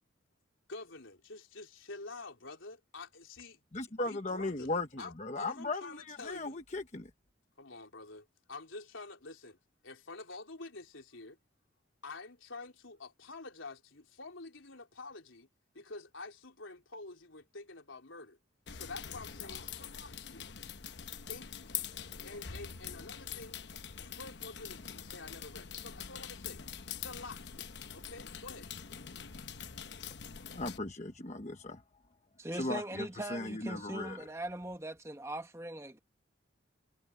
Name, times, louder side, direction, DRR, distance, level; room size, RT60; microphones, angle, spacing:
voice 1, 0.7-3.6 4.0-6.6 7.6-9.6 9.8-11.4 12.0-15.5 15.7-18.4 18.7-20.5 21.3-21.7 22.2-23.6 24.0-26.6 26.9-27.7 27.9-28.7, left 3 dB, 90° left, 4.1 m, -48 dB
voice 2, 3.7-7.1 30.6-31.8 32.5-34.2, left 2 dB, 35° left, 1.1 m, -37 dB
sound 1, 18.7-30.8, left 8 dB, 65° left, 0.9 m, -44 dB
voice 3, 32.4-36.0, right 1 dB, 15° right, 1.5 m, -40 dB
head